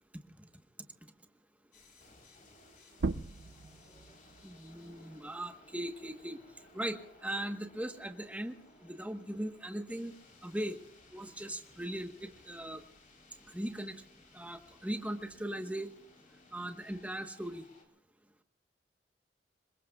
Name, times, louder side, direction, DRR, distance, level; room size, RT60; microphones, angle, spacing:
sound 1, 1.7-17.8, left 2 dB, 45° left, 3.6 m, -60 dB
sound 2, 2.9-8.1 8.5-10.3, right 3 dB, 75° right, 0.5 m, -42 dB
voice 1, 4.4-6.4 6.7-8.5 8.8-10.1 10.4-10.8 11.1-12.8 13.5-14.0 14.3-15.9 16.5-17.6, right 1 dB, 10° right, 7 dB, 1.1 m, -39 dB
26.5 x 22.0 x 2.3 m, 0.72 s
head